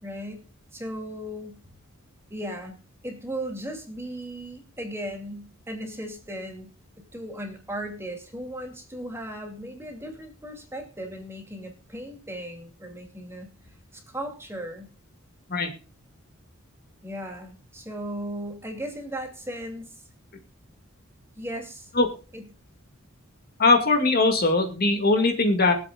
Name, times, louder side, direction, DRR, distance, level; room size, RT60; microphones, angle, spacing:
voice 1, 0.0-0.4 0.7-1.6 2.3-2.8 3.0-6.7 7.1-14.9 17.0-20.0 21.4-21.9 22.3-22.4, right 1 dB, 10° right, 2 dB, 2.6 m, -36 dB
voice 2, 23.6-25.7, left 3 dB, 45° left, 4 dB, 2.1 m, -20 dB
23.5 x 8.0 x 2.4 m, 0.35 s
head